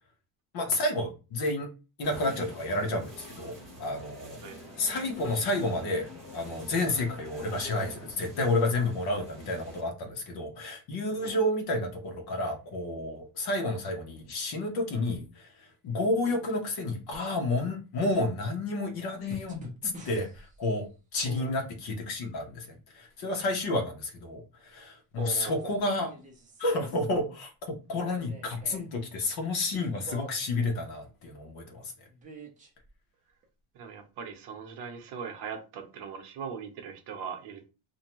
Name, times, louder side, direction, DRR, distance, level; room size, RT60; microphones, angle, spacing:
voice 1, 0.5-1.7 2.0-4.4 4.8-15.5 15.8-19.6 20.1-26.1 26.6-31.9, left 2 dB, 55° left, 3 dB, 0.9 m, -30 dB
sound 1, 2.0-9.8, left 1 dB, ahead, 0.9 m, -47 dB
sound 2, 19.3-20.6 22.4-22.5 25.3-27.0 27.9-28.9 29.6-30.5 32.1-32.9 33.4-33.5, right 1 dB, 20° right, 0.5 m, -45 dB
voice 2, 25.2-25.7 33.7-37.6, right 6 dB, 65° right, 5 dB, 0.8 m, -40 dB
2.6 x 2.2 x 3.0 m, 0.32 s
cardioid pair, 150°, 45 cm